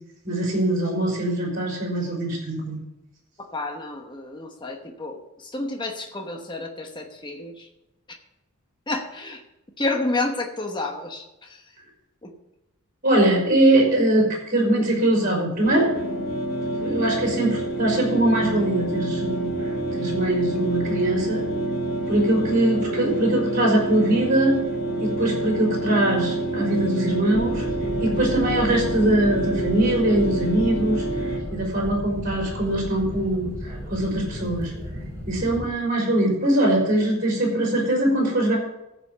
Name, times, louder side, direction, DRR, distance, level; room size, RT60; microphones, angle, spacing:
voice 1, 0.2-2.8 13.0-15.9 16.8-19.6 19.9-21.4 22.1-24.6 25.0-27.7 28.0-34.7 35.2-38.6, right 1 dB, 40° right, -1 dB, 4.5 m, -22 dB
voice 2, 3.4-7.7 8.9-9.4 9.8-11.6 12.2-12.3, left 2 dB, 20° left, 2 dB, 1.0 m, -30 dB
sound 1, 15.6-31.4, right 2 dB, 70° left, 2.8 m, -27 dB
sound 2, 27.3-35.7, equal, 15° right, 5.1 m, -34 dB
14.5 x 5.1 x 6.8 m, 0.91 s
head